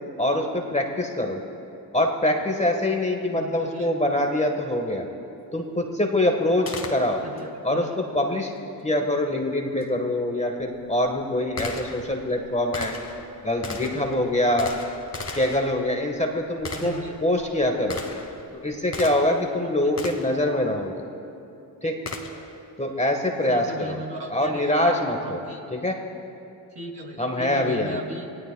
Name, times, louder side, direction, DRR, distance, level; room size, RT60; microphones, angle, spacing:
voice 1, 0.2-1.4 1.9-5.1 5.5-7.2 7.6-8.5 8.8-12.9 13.4-14.7 15.3-16.9 17.2-18.0 18.6-21.0 21.8-21.9 22.8-24.0 24.3-25.4 25.7-26.0 27.2-28.0, left 1 dB, 15° left, 3 dB, 1.4 m, -24 dB
voice 2, 3.3-3.9 7.2-7.9 16.7-17.1 19.5-20.0 23.5-25.6 26.7-28.2, right 2 dB, 55° right, 0 dB, 3.0 m, -37 dB
Gunshot gunfire, 6.7-7.5 9.8-9.9 10.6-19.5 20.0-20.4 22.1-22.6, left 3 dB, 30° left, 1.9 m, -37 dB
24.5 x 16.5 x 2.3 m, 2.7 s
supercardioid pair, 55°, 48 cm